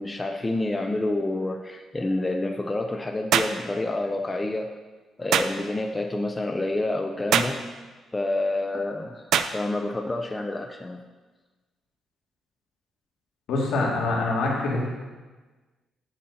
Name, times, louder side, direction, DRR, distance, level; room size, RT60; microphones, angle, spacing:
voice 1, 0.0-4.7 5.2-7.6 8.1-9.3 9.5-11.0, left 2 dB, 20° left, 4 dB, 0.5 m, -28 dB
sound 1, 3.3-3.6 5.3-5.5 7.3-7.6 9.3-9.5, right 8 dB, 75° right, 0.4 m, -22 dB
voice 2, 13.5-14.9, left 2 dB, 80° left, -3 dB, 2.0 m, -25 dB
8.6 x 8.2 x 2.7 m, 1.3 s
cardioid pair, 90°, 0 cm